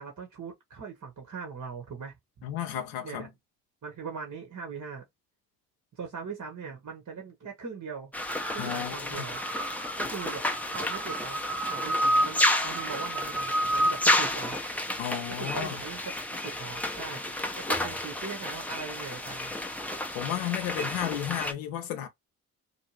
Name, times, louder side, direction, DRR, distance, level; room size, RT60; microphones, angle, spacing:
voice 1, 0.0-2.2 3.0-3.3 3.8-5.0 5.9-8.1 8.5-9.4 10.0-11.4 11.7-14.6 15.3-16.0 16.3-19.5, right 5 dB, 40° right, 1.3 m, -40 dB
voice 2, 2.4-3.3 8.6-9.3 15.0-15.8 20.1-22.1, left 10 dB, 80° left, 0.7 m, -33 dB
sound 1, 8.1-21.5, left 1 dB, 5° left, 0.7 m, -30 dB
2.7 x 2.5 x 3.0 m
hypercardioid pair, 40°, 45 cm